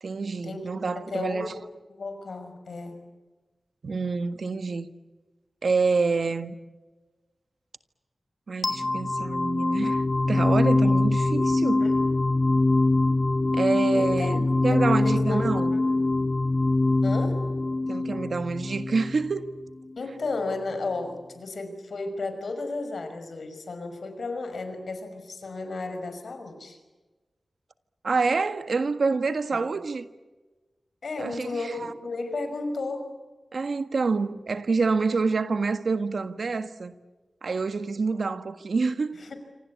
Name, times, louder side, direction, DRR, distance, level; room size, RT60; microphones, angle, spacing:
voice 1, 0.0-1.5 3.8-4.9 5.6-6.5 8.5-10.0 10.3-11.8 13.5-14.4 14.6-15.8 17.9-19.5 28.0-30.0 31.2-31.9 33.5-36.9 37.4-39.2, right 4 dB, 75° right, 1.6 m, -27 dB
voice 2, 0.9-3.1 11.8-12.0 13.9-15.9 17.0-17.4 20.0-26.8 29.5-29.6 31.0-33.1 39.1-39.3, left 3 dB, 75° left, 5.8 m, -33 dB
sound 1, 8.6-19.6, left 2 dB, 40° left, 1.5 m, -24 dB
27.5 x 25.5 x 8.5 m
cardioid pair, 40°, 0 cm